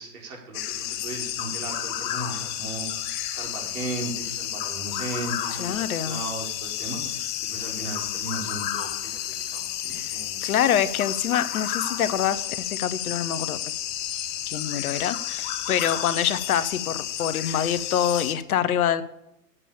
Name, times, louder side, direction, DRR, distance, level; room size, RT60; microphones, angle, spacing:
voice 1, 0.0-10.4, right 3 dB, 60° right, 0 dB, 4.7 m, -36 dB
sound 1, 0.5-18.3, left 11 dB, 30° left, 0.8 m, -31 dB
voice 2, 5.6-6.2 9.9-10.1 10.4-13.6 14.5-19.0, left 9 dB, 60° left, 15 dB, 0.9 m, -25 dB
8.4 x 7.0 x 8.5 m, 0.85 s
hypercardioid pair, 125°, 49 cm